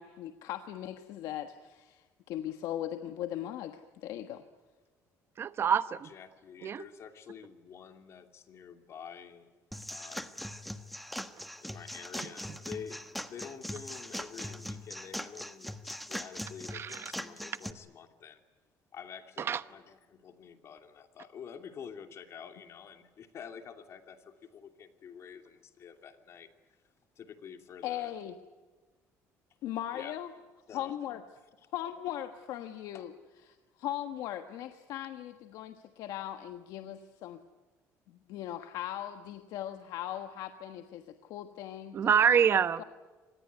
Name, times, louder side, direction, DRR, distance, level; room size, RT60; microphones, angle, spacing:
voice 1, 0.0-4.4 27.8-28.3 29.6-30.3 30.7-31.2 31.7-33.1 33.5-37.4 38.1-42.1 42.8-42.9, left 12 dB, 80° left, 7 dB, 1.4 m, -39 dB
voice 2, 5.4-6.1 6.6-6.8 16.7-17.1 19.4-19.6 41.9-42.8, right 7 dB, 40° right, 14 dB, 1.0 m, -26 dB
voice 3, 6.0-9.5 9.9-10.4 11.6-13.0 13.3-18.4 18.9-26.5 27.2-28.1 29.9-30.1 30.7-30.9 32.9-33.0, left 7 dB, 50° left, 6 dB, 2.7 m, -48 dB
sound 1, 9.7-17.7, equal, ahead, 1.3 m, -41 dB
26.0 x 20.0 x 9.5 m, 1.3 s
cardioid pair, 125°, 6 cm